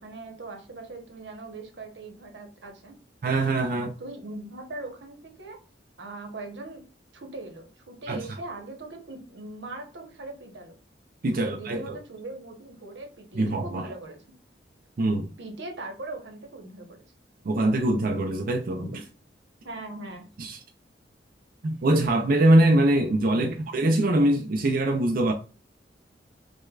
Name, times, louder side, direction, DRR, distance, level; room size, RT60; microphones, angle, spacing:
voice 1, 0.0-3.0 4.0-5.6 6.0-6.8 7.1-10.8 11.3-14.2 15.4-17.0 18.7-19.0 19.6-20.3 23.4-23.5, right 2 dB, 90° right, 1.1 m, -40 dB
voice 2, 3.2-3.9 8.1-8.4 11.2-12.0 13.3-13.9 15.0-15.3 17.4-18.8 20.4-20.6 21.6-25.3, right 1 dB, 55° right, 0.4 m, -23 dB
6.2 x 2.2 x 2.3 m
head